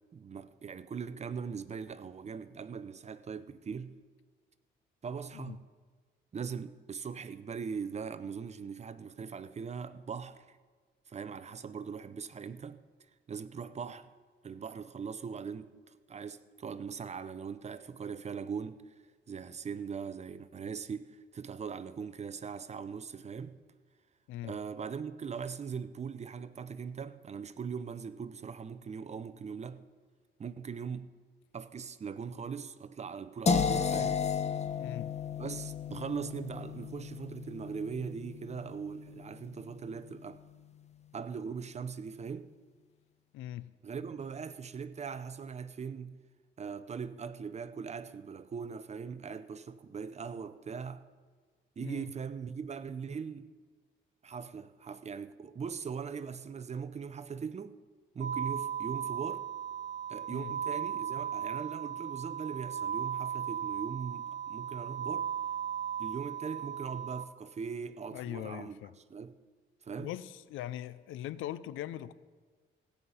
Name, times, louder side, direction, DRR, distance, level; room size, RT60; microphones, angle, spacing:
voice 1, 0.1-3.9 5.0-5.6 6.3-10.6 11.1-12.8 13.3-14.1 14.4-15.7 16.1-18.9 19.3-23.5 24.4-29.8 30.4-31.1 31.5-34.2 35.4-40.4 41.1-42.5 43.8-46.2 46.6-51.0 51.8-53.5 54.2-57.8 58.1-59.5 60.1-65.3 66.0-68.8 69.1-69.4 69.8-70.1, right 6 dB, 35° right, 0.6 m, -40 dB
sound 1, 33.5-39.4, left 6 dB, 35° left, 0.9 m, -33 dB
voice 2, 34.8-35.1 43.3-43.7 51.8-52.0 60.3-60.5 68.1-68.9 70.0-72.1, left 13 dB, 85° left, 0.5 m, -41 dB
sound 2, 58.2-67.2, right 9 dB, 70° right, 0.8 m, -36 dB
16.5 x 5.7 x 8.0 m
cardioid pair, 90°, 20 cm